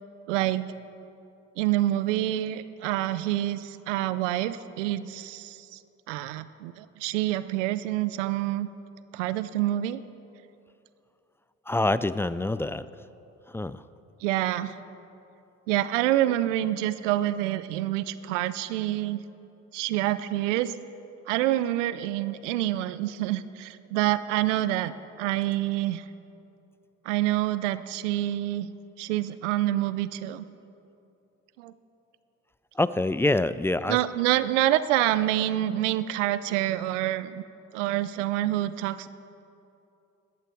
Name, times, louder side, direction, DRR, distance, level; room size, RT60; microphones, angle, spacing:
voice 1, 0.3-0.7 1.6-5.8 6.1-8.7 9.1-10.0 14.2-14.7 15.7-19.2 19.7-20.8 21.3-24.9 25.2-26.0 27.0-30.4 31.6-31.7 33.9-37.4 37.7-39.1, right 14 dB, 85° right, 15 dB, 0.5 m, -27 dB
voice 2, 11.7-12.9 13.5-13.8 32.8-34.0, left 2 dB, 5° left, 15 dB, 0.3 m, -26 dB
15.0 x 12.0 x 4.7 m, 2.7 s
hypercardioid pair, 60°, 36 cm